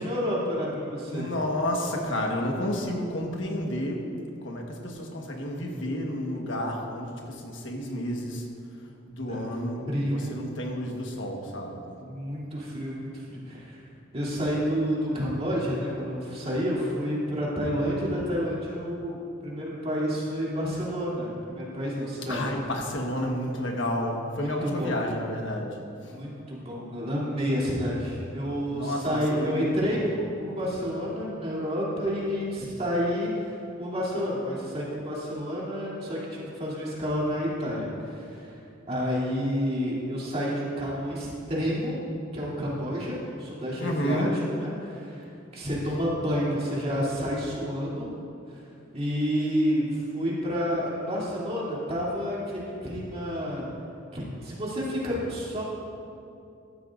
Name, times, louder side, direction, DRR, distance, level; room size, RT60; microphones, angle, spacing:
voice 1, 0.0-1.3 9.3-9.4 9.9-10.4 11.9-13.8 14.1-22.4 24.3-25.0 26.1-38.6 38.9-42.0 42.3-45.3 45.5-48.1 48.5-53.6 54.1-55.6, equal, 35° right, -6 dB, 3.0 m, -29 dB
voice 2, 1.1-4.1 4.4-8.5 9.1-11.8 22.3-25.8 28.7-30.1 43.8-44.3, left 1 dB, 70° left, 1 dB, 1.4 m, -31 dB
15.0 x 12.5 x 2.6 m, 2.6 s
head